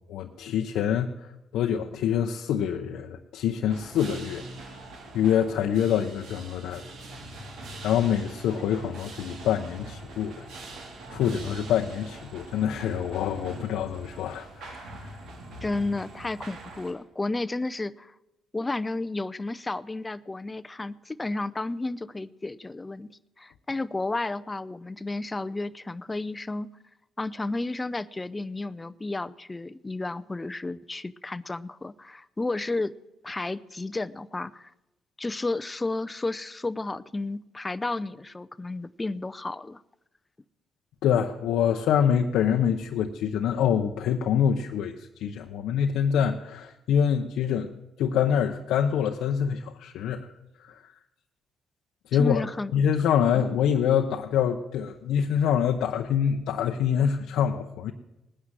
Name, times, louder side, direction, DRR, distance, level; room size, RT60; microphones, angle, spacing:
voice 1, 0.1-1.1 1.5-4.4 5.1-6.8 7.8-10.5 11.1-14.9 41.0-50.3 50.6-50.8 52.1-52.4 52.7-57.9, left 8 dB, 85° left, 3 dB, 0.8 m, -25 dB
sound 1, 3.7-16.9, right 1 dB, 75° right, 3.1 m, -42 dB
voice 2, 15.6-18.1 18.5-23.1 23.4-26.7 27.2-32.9 33.2-34.7 35.2-39.8 52.1-52.7 53.3-53.5, left 2 dB, 20° left, 14 dB, 0.6 m, -32 dB
18.5 x 10.0 x 7.5 m, 0.95 s
cardioid pair, 90°, 0 cm